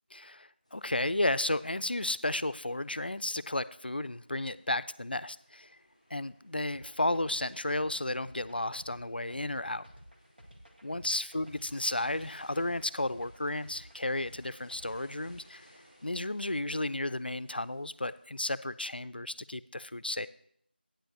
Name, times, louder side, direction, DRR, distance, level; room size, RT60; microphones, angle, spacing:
voice 1, 0.1-5.7 6.1-9.9 10.8-15.7 16.0-20.3, left 2 dB, 65° left, 16 dB, 0.4 m, -33 dB
sound 1, 0.6-18.5, equal, 5° right, 2.2 m, -63 dB
sound 2, 6.7-15.4, equal, 65° right, 1.8 m, -54 dB
9.0 x 4.7 x 6.4 m, 0.68 s
figure-of-eight pair, 175°, 6 cm